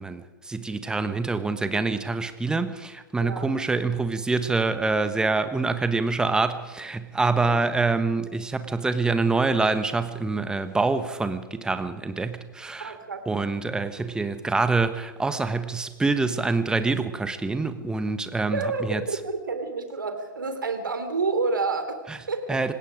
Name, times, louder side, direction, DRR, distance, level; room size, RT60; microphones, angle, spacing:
voice 1, 0.0-13.0 13.3-19.0 22.1-22.2 22.5-22.7, right 3 dB, 5° right, 10 dB, 1.3 m, -26 dB
voice 2, 3.2-3.5 12.8-13.2 18.5-22.0 22.3-22.6, right 3 dB, 70° right, 8 dB, 3.4 m, -29 dB
26.0 x 19.5 x 5.1 m, 1.2 s
figure-of-eight pair, 110°, 11 cm